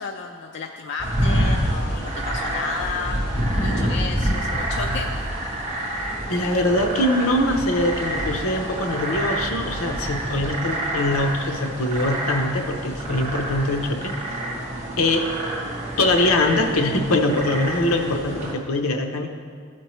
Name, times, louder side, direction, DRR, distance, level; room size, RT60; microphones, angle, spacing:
voice 1, 0.0-3.2 3.6-5.3, left 4 dB, 55° left, 3 dB, 0.3 m, -32 dB
sound 1, 1.0-18.5, right 1 dB, 30° right, 1.2 m, -27 dB
voice 2, 6.3-14.4 15.0-15.3 16.0-19.3, left 1 dB, 80° left, 4 dB, 0.7 m, -23 dB
13.5 x 4.4 x 3.1 m, 2.1 s
head